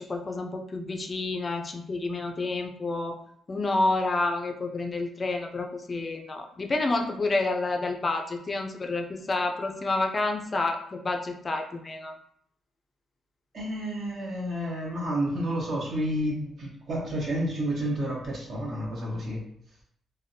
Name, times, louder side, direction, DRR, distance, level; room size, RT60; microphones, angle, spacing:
voice 1, 0.0-3.2 3.5-12.2, left 2 dB, 35° left, 4 dB, 0.3 m, -29 dB
voice 2, 13.5-19.4, equal, 55° right, -3 dB, 1.1 m, -30 dB
3.3 x 2.1 x 2.7 m, 0.67 s
cardioid pair, 90°, 0 cm